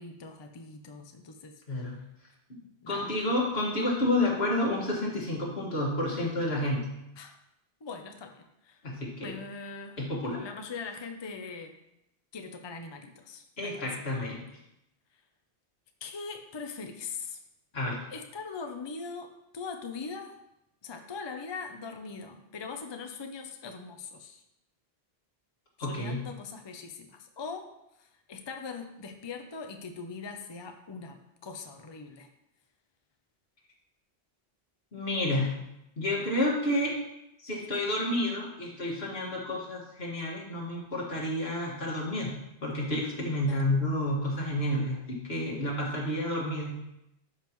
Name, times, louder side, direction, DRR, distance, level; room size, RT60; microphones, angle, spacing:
voice 1, 0.0-1.5 2.6-3.2 7.2-7.4 7.8-8.8 9.2-11.8 12.3-14.1 16.0-17.4 18.1-20.4 20.8-24.4 25.8-27.7 28.0-32.3 43.5-43.7, left 4 dB, 30° left, 5 dB, 0.5 m, -41 dB
voice 2, 2.9-6.8 8.8-9.4 10.0-10.4 13.6-14.4 17.7-18.0 25.8-26.2 34.9-35.5 36.0-36.9 37.4-42.3 42.6-46.8, left 1 dB, 70° left, -3 dB, 2.2 m, -30 dB
12.0 x 5.4 x 3.1 m, 0.85 s
omnidirectional pair, 1.1 m